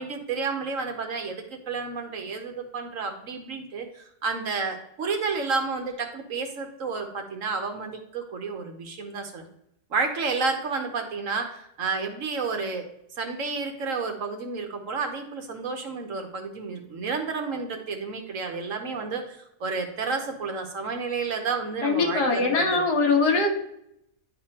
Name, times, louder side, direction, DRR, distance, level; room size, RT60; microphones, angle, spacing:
voice 1, 0.0-9.5 9.9-12.9 13.2-22.8, right 4 dB, 55° right, 5 dB, 1.2 m, -31 dB
voice 2, 21.8-23.5, left 3 dB, 80° left, 1 dB, 1.9 m, -22 dB
9.9 x 4.9 x 2.9 m, 0.76 s
omnidirectional pair, 1.7 m